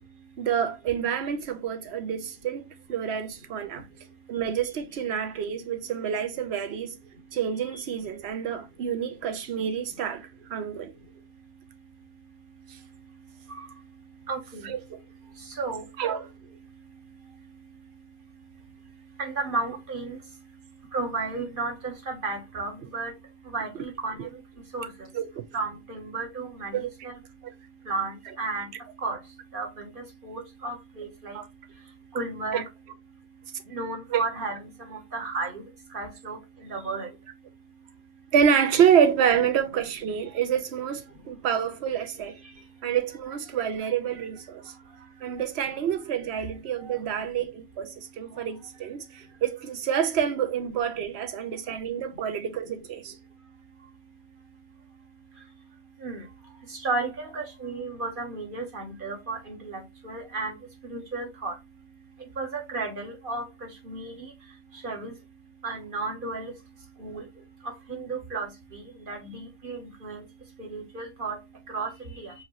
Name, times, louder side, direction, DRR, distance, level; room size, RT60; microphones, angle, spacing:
voice 1, 0.4-3.9 4.3-7.0 7.3-10.9 12.7-12.8 14.6-15.0 16.0-16.3 24.2-24.3 25.1-25.4 26.7-27.1 27.4-27.5 31.3-31.5 32.5-32.6 34.1-34.2 38.3-42.4 42.8-44.6 45.2-53.1, right 8 dB, 70° right, 1.0 m, -27 dB
voice 2, 14.3-14.7 15.6-15.8 19.2-20.2 20.9-23.1 23.5-24.3 24.7-24.9 25.5-27.1 27.9-28.7 29.0-29.2 29.5-31.4 32.1-32.6 33.7-34.6 34.9-35.6 35.9-36.4 36.6-37.1 56.0-56.2 56.8-60.6 60.9-61.5 62.4-63.4 63.9-64.3 64.8-65.1 65.6-66.5 67.0-67.2 67.9-70.2 70.6-71.4 71.7-71.9 72.2-72.3, right 3 dB, 50° right, 1.4 m, -33 dB
4.7 x 2.8 x 3.0 m
omnidirectional pair, 1.1 m